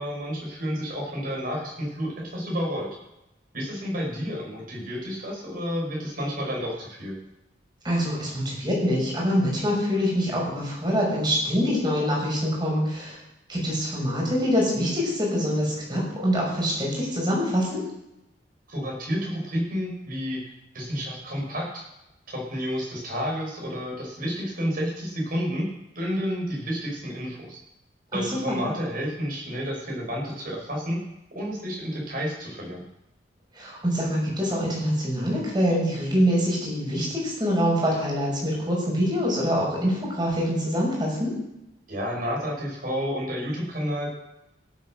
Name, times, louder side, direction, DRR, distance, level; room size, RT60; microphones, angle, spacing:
voice 1, 0.0-2.9 3.5-7.2 18.7-20.4 20.7-21.8 22.3-25.7 25.9-27.6 28.1-31.0 31.3-32.8 41.9-44.1, equal, 55° right, -2 dB, 6.6 m, -30 dB
voice 2, 7.8-13.2 13.5-17.8 28.1-28.6 33.5-41.3, equal, 25° right, -3 dB, 5.9 m, -25 dB
17.0 x 8.4 x 6.6 m, 0.89 s
head